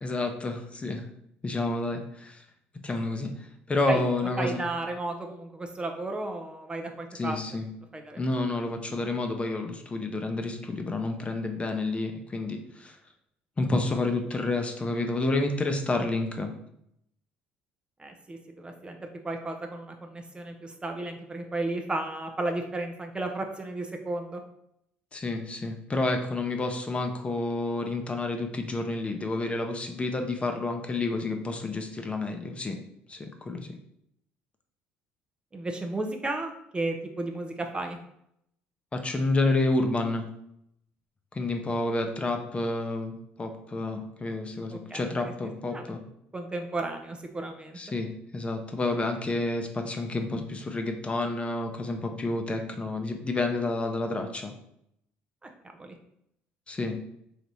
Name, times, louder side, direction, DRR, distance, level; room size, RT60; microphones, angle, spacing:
voice 1, 0.0-1.0 1.4-2.4 2.8-3.3 3.7-4.6 7.1-7.7 8.2-13.0 13.6-16.5 25.1-32.8 33.1-33.7 38.9-40.3 41.3-46.0 47.7-54.5 56.7-57.0, left 2 dB, 25° left, 5 dB, 0.6 m, -29 dB
voice 2, 4.4-7.4 7.9-8.2 18.0-19.0 19.2-24.4 35.5-38.0 44.9-45.0 45.7-45.9 46.3-47.8 55.8-56.0, right 2 dB, 20° right, 4 dB, 0.5 m, -33 dB
3.4 x 2.9 x 4.0 m, 0.75 s
supercardioid pair, 75°, 5 cm